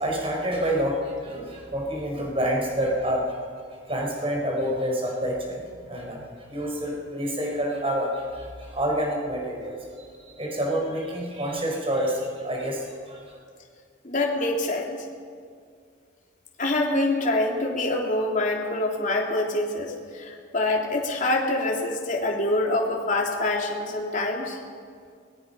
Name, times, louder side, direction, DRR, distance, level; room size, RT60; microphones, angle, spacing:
voice 1, 0.0-3.4 3.9-6.2 6.5-13.4, equal, 30° right, -1 dB, 4.6 m, -28 dB
voice 2, 14.0-15.0 16.6-24.6, left 2 dB, 40° left, 0 dB, 3.2 m, -25 dB
25.5 x 21.5 x 5.6 m, 2.2 s
head